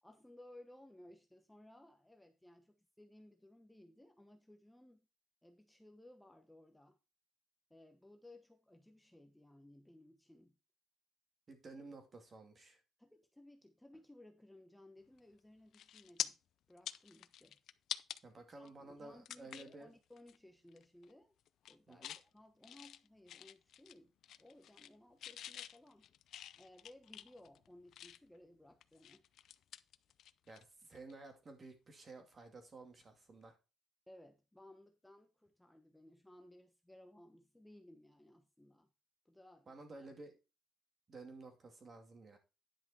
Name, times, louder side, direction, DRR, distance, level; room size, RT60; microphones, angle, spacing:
voice 1, 0.0-5.0 5.4-7.0 7.7-10.6 13.0-16.4 16.7-17.6 18.6-21.3 21.7-24.1 24.4-26.1 26.6-29.2 34.1-38.9 39.2-40.1, left 1 dB, 5° left, 5 dB, 1.0 m, -60 dB
voice 2, 11.5-12.8 18.2-19.9 21.9-22.1 30.5-33.6 39.7-40.4 41.1-42.4, right 3 dB, 35° right, 5 dB, 2.4 m, -53 dB
sound 1, 15.2-15.4 15.7-16.3 16.7-18.2 18.7-18.8 19.3-19.8 20.2-20.4 20.7-21.1 21.5-22.2 22.6-24.0 24.2-24.9 25.2-28.4 28.8-30.6 30.9-31.1 33.0-33.2, left 11 dB, 70° left, 0.5 m, -47 dB
10.0 x 5.8 x 4.4 m, 0.29 s
cardioid pair, 125°, 0 cm